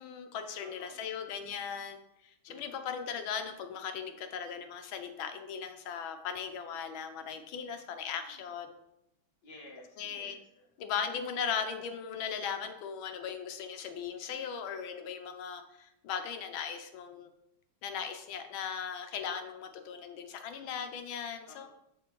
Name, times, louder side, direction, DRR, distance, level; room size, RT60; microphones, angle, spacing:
voice 1, 0.0-2.0 2.2-8.7 10.0-10.4 10.8-17.3 17.8-21.7, left 7 dB, 90° left, 7 dB, 1.6 m, -38 dB
voice 2, 0.6-1.1 2.5-2.9 8.1-8.4 9.4-10.7 20.6-20.8 21.5-21.7, left 1 dB, 60° left, -3 dB, 2.0 m, -54 dB
10.0 x 4.2 x 3.1 m, 0.81 s
omnidirectional pair, 2.2 m